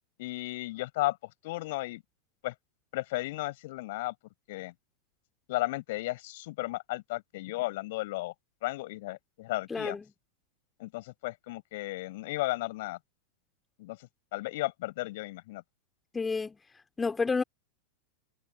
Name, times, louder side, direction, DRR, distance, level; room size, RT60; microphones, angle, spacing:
voice 1, 0.2-1.2 1.4-2.0 2.4-2.5 2.9-4.1 4.5-4.7 5.5-8.3 8.6-10.0 10.8-13.0 13.8-15.6, left 19 dB, 50° left, 6.0 m, -34 dB
voice 2, 9.7-10.0 16.1-16.6 17.0-17.4, left 4 dB, 15° left, 3.5 m, -29 dB
figure-of-eight pair, 90°, 0 cm